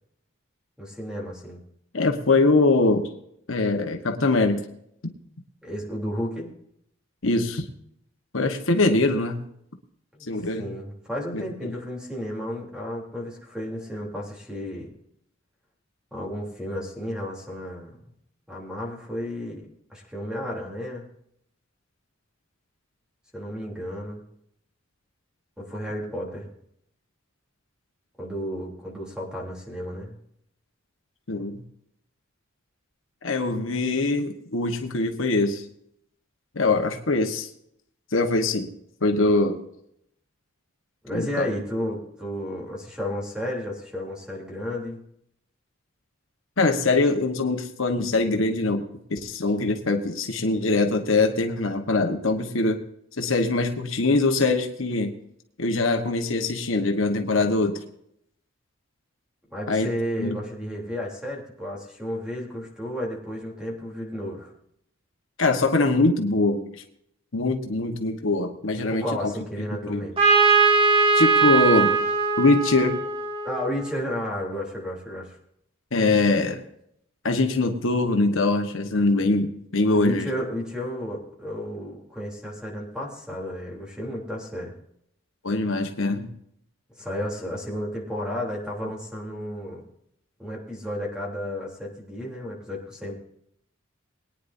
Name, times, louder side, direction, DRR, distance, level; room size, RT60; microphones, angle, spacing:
voice 1, 0.8-1.6 5.6-6.5 10.1-10.3 10.6-14.9 16.1-18.0 18.5-21.1 23.3-24.2 25.6-26.5 28.2-30.2 41.0-45.0 59.5-64.5 68.8-70.2 73.4-75.3 79.9-84.7 87.0-89.9 90.4-93.1, equal, 5° right, -2 dB, 3.4 m, -32 dB
voice 2, 1.9-3.1 3.5-4.6 7.2-7.6 8.3-9.4 10.3-10.7 11.3-11.7 31.3-31.6 33.2-35.6 36.5-37.5 38.1-38.7 39.0-39.6 41.1-41.5 46.6-48.8 49.1-52.8 53.2-55.1 55.6-57.8 59.7-59.9 60.2-60.4 65.4-66.6 67.3-69.3 69.8-70.0 71.1-71.9 72.4-72.9 75.9-76.6 77.2-80.3 85.4-86.3, left 3 dB, 75° left, 4 dB, 1.4 m, -23 dB
Trumpet, 70.2-73.9, right 4 dB, 30° right, 2.9 m, -20 dB
22.0 x 9.9 x 2.7 m, 0.73 s
head